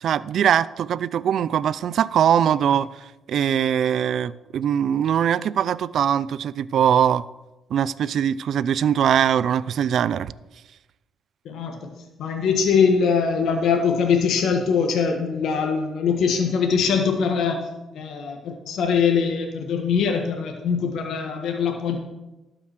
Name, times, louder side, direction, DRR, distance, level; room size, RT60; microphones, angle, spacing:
voice 1, 0.0-2.9 3.3-7.2 7.7-10.3, right 9 dB, 65° right, 0.4 m, -21 dB
voice 2, 11.4-11.9 12.2-17.7 17.9-22.0, left 6 dB, 75° left, 1.4 m, -22 dB
12.0 x 5.9 x 6.5 m
cardioid pair, 90°, 0 cm